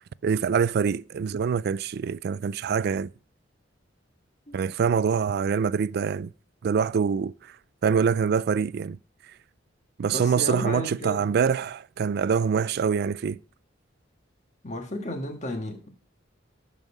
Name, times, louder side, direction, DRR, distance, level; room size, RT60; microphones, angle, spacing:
voice 1, 0.2-3.1 4.5-6.3 6.6-7.3 7.8-9.0 10.0-13.4, right 6 dB, 55° right, 0.3 m, -25 dB
voice 2, 10.1-11.3 14.6-15.9, left 1 dB, 40° left, 1.5 m, -33 dB
10.5 x 5.6 x 4.9 m
head